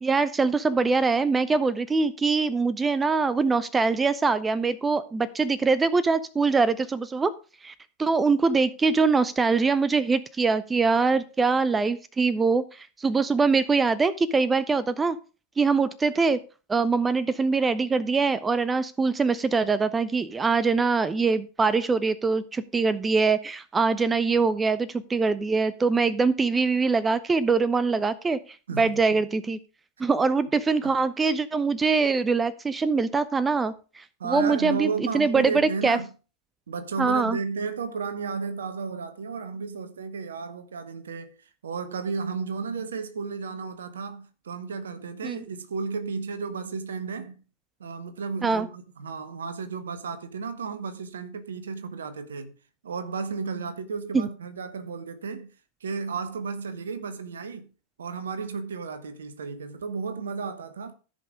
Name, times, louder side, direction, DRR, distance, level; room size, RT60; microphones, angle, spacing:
voice 1, 0.0-7.3 7.6-15.2 15.6-16.4 16.7-28.4 28.8-29.6 30.0-36.0 37.0-37.4 45.2-45.4 48.4-48.7 54.1-54.3, right 4 dB, 15° right, 0.5 m, -23 dB
voice 2, 28.7-29.2 30.8-30.9 34.2-36.1 36.7-47.4 47.8-52.5 52.8-55.5 55.8-57.7 58.0-60.9, right 5 dB, 65° right, 1.1 m, -33 dB
14.0 x 5.5 x 5.0 m
figure-of-eight pair, 90°, 0 cm